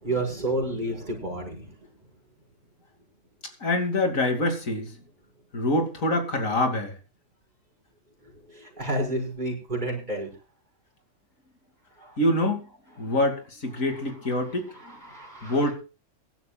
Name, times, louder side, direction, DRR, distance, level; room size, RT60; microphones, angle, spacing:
voice 1, 0.0-1.7 8.5-10.3 12.0-12.2 14.8-15.6, right 1 dB, 35° right, 6.2 m, -30 dB
voice 2, 3.6-4.9 5.5-7.0 12.2-12.7 13.0-14.7 15.4-15.7, left 1 dB, 85° left, 3.1 m, -25 dB
23.5 x 12.5 x 2.4 m
omnidirectional pair, 1.4 m